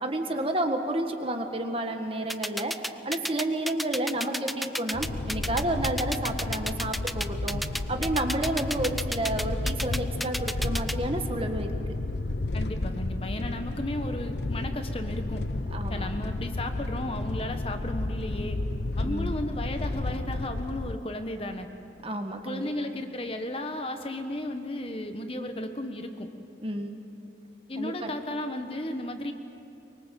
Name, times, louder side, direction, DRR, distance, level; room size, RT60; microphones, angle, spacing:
voice 1, 0.0-7.6 7.9-11.7 15.7-16.1 19.0-19.3 22.0-22.7 26.6-26.9 27.8-28.2, right 1 dB, 30° right, 5 dB, 1.6 m, -30 dB
sound 1, 2.3-10.9, equal, ahead, 0.5 m, -31 dB
sound 2, 4.9-21.0, left 2 dB, 65° left, 0.8 m, -32 dB
voice 2, 12.5-15.4 15.9-18.6 19.0-21.7 22.4-26.3 27.7-29.3, left 1 dB, 30° left, 6 dB, 1.2 m, -34 dB
24.0 x 24.0 x 7.6 m, 2.8 s
head